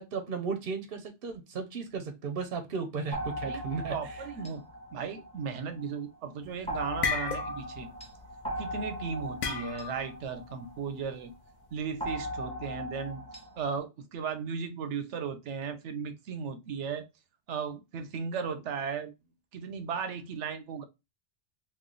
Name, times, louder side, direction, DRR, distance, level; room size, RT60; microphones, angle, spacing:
voice 1, 0.0-3.9, right 5 dB, 60° right, 0.8 m, -35 dB
sound 1, 3.1-5.9 6.7-11.2 12.0-13.8, right 1 dB, 5° left, 0.7 m, -39 dB
voice 2, 3.9-4.6 4.9-7.9 8.6-11.3 11.7-13.2 13.6-17.1 17.5-19.1 19.5-20.8, right 6 dB, 85° right, 1.0 m, -36 dB
sound 2, 6.5-8.4 9.4-10.1, left 5 dB, 55° left, 0.5 m, -33 dB
3.1 x 2.3 x 3.7 m
omnidirectional pair, 1.2 m